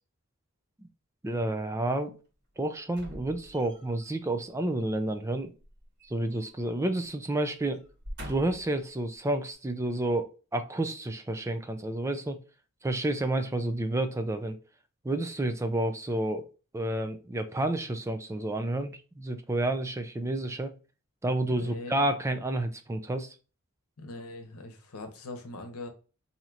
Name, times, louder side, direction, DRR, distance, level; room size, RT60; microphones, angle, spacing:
voice 1, 1.2-2.1 2.6-5.5 6.1-7.8 8.3-12.4 12.8-14.6 15.0-16.5 16.7-20.7 21.2-23.4, right 1 dB, 15° right, 7 dB, 0.4 m, -30 dB
sound 1, 2.9-4.0 5.6-6.7 7.0-7.2 7.8-8.8 9.4-9.5, equal, 50° right, 1.4 m, -44 dB
voice 2, 21.5-22.0 24.0-25.9, left 2 dB, 85° left, 5 dB, 0.9 m, -41 dB
4.5 x 2.8 x 2.4 m, 0.34 s
head